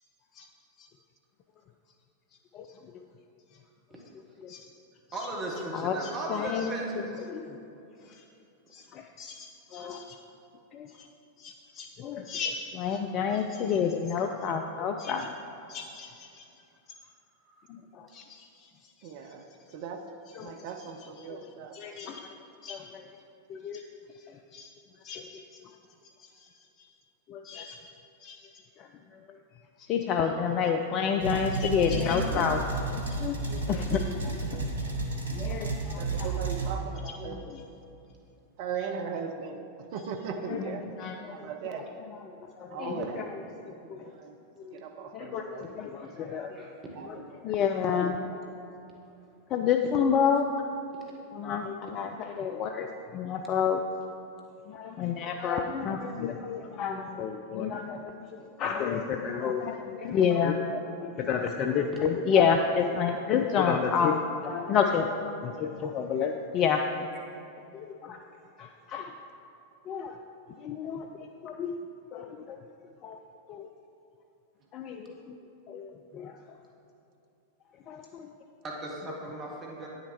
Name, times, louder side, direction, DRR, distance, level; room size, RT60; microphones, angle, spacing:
voice 1, 5.1-7.1 17.5-17.7 46.0-46.7 78.6-79.9, right 1 dB, 25° right, -2 dB, 1.4 m, -37 dB
voice 2, 5.7-6.7 7.3-7.6 8.7-10.2 10.7-11.1 11.4-15.3 15.7-16.4 17.7-18.2 20.4-20.5 21.3-21.4 21.7-22.3 22.6-23.0 23.5-23.8 24.5-24.7 25.0-25.4 27.3-27.8 28.2-28.4 29.9-32.6 33.0-34.7 35.3-36.0 37.3-37.4 40.5-40.6 41.0-41.3 42.6-43.2 43.9-44.1 44.6-44.7 45.1-46.6 47.4-48.3 49.5-50.5 51.3-52.9 53.1-53.8 54.7-65.1 65.4-66.8 67.7-68.2 68.6-69.2 69.9-70.2 70.6-71.8 72.1-72.6 73.0-73.2 73.5-73.7 74.7-75.4 75.7-76.3 77.9-78.3, left 7 dB, 35° left, 5 dB, 0.4 m, -30 dB
voice 3, 19.0-19.5 19.7-20.1 20.4-21.8 35.2-37.4 38.6-39.6 39.9-40.8 41.3-41.9 42.7-43.2 43.5-44.4 44.7-45.6 46.2-46.5 46.9-47.4, right 6 dB, 50° right, 6 dB, 0.6 m, -39 dB
sound 1, 31.2-36.7, right 3 dB, 75° right, 1.0 m, -32 dB
9.6 x 6.5 x 4.4 m, 2.8 s
figure-of-eight pair, 90°, 0 cm